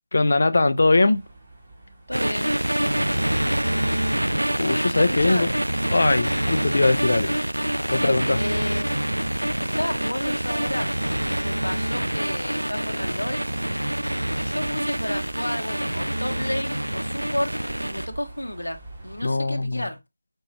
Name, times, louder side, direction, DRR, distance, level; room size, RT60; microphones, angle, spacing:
voice 1, 0.1-1.2 4.6-5.5 5.9-7.4 7.9-8.4 19.2-19.8, left 2 dB, 55° left, 0.6 m, -21 dB
sound 1, 0.8-19.2, right 2 dB, 30° right, 1.6 m, -43 dB
voice 2, 2.1-2.5 2.8-3.3 5.0-5.5 7.9-9.1 9.6-10.9 11.2-13.4 14.4-20.0, left 1 dB, 85° left, 0.8 m, -32 dB
sound 2, 2.1-18.1, right 1 dB, 85° right, 0.3 m, -26 dB
5.4 x 2.9 x 2.8 m
figure-of-eight pair, 160°, 0 cm